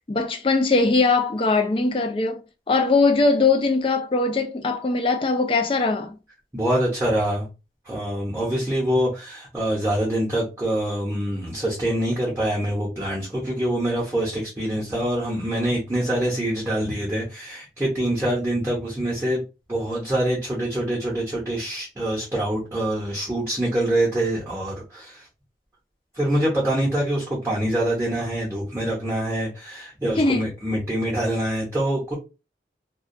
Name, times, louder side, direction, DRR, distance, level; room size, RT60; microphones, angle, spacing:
voice 1, 0.1-2.4 2.7-6.2 30.2-30.5, left 3 dB, 30° left, 0.4 m, -21 dB
voice 2, 6.5-7.5 7.8-19.4 19.7-25.3 26.1-32.1, right 1 dB, 15° right, 0.7 m, -25 dB
2.2 x 2.2 x 2.6 m
head